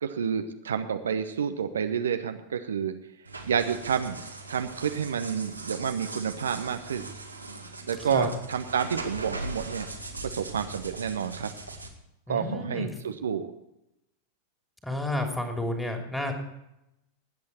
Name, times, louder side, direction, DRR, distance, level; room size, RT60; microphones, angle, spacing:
voice 1, 0.0-2.9 3.4-4.2 4.5-7.1 7.9-9.9 10.2-11.5 12.3-13.5, right 7 dB, 65° right, 8 dB, 0.9 m, -29 dB
sound 1, 3.2-11.9, right 2 dB, 85° right, 1.9 m, -40 dB
voice 2, 12.3-12.9 14.8-16.3, left 1 dB, 5° left, 3 dB, 2.9 m, -31 dB
20.0 x 8.6 x 4.3 m, 0.86 s
figure-of-eight pair, 90°, 0 cm